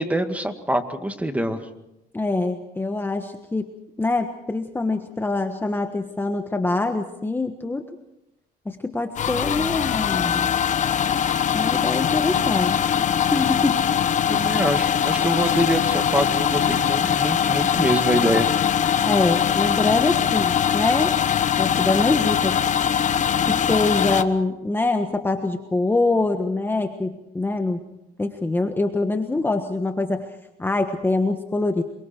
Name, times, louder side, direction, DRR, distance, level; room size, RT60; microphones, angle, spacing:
voice 1, 0.0-1.7 14.3-18.5, right 1 dB, 10° right, 7 dB, 2.0 m, -24 dB
voice 2, 2.1-3.7 4.0-7.8 8.6-10.5 11.5-13.8 19.0-21.1 21.6-22.6 23.5-27.8 28.2-30.3 30.6-31.8, left 2 dB, 10° left, 6 dB, 1.3 m, -24 dB
sound 1, 9.2-24.2, left 8 dB, 45° left, 1.1 m, -22 dB
27.0 x 23.5 x 4.5 m, 0.87 s
cardioid pair, 110°, 17 cm